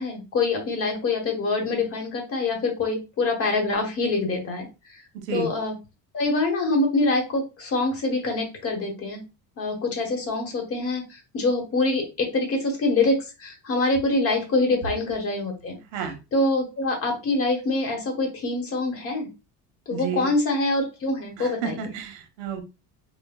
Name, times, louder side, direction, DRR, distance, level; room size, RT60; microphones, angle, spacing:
voice 1, 0.0-4.7 5.3-5.7 6.1-9.2 9.6-11.0 11.3-15.8 16.3-19.3 19.9-21.8, left 2 dB, 35° left, 2 dB, 1.0 m, -25 dB
voice 2, 19.9-20.3 21.4-22.6, right 6 dB, 90° right, 6 dB, 1.0 m, -31 dB
5.2 x 2.0 x 2.2 m, 0.29 s
cardioid pair, 175°, 42 cm